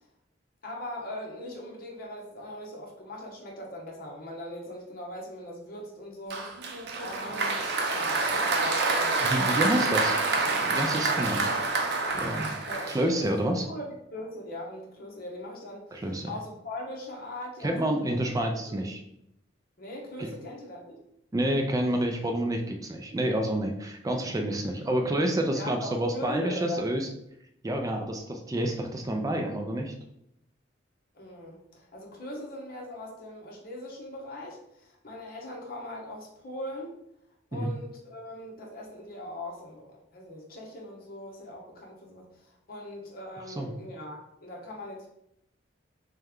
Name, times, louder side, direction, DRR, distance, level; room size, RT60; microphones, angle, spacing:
voice 1, 0.6-6.5 7.0-10.0 12.7-18.2 18.7-18.8 19.8-21.0 25.5-27.0 31.1-37.0 37.5-45.1, left 1 dB, 50° left, -1 dB, 1.0 m, -40 dB
Applause, 6.3-13.4, right 3 dB, 60° right, 0.6 m, -27 dB
voice 2, 9.2-10.2 10.5-11.4 12.1-12.6 12.9-13.6 15.9-16.3 17.6-19.0 20.2-20.3 21.3-27.1 27.6-29.9 37.5-37.7 43.6-43.7, right 1 dB, 20° right, 3 dB, 0.3 m, -28 dB
3.3 x 3.2 x 3.5 m, 0.78 s
head